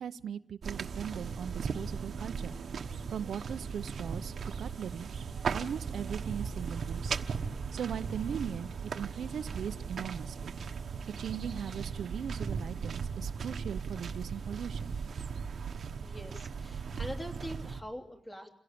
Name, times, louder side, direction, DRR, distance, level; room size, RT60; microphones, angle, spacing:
voice 1, 0.0-2.5 3.1-5.1 5.5-7.2 7.7-10.6 11.0-14.9 15.2-15.3 16.9-17.0, right 8 dB, 80° right, 11 dB, 0.8 m, -39 dB
sound 1, 0.6-17.8, right 5 dB, 60° right, 1.2 m, -37 dB
voice 2, 16.0-18.5, equal, 15° left, 3 dB, 3.1 m, -43 dB
29.0 x 17.0 x 8.7 m, 0.86 s
wide cardioid pair, 140°, 0 cm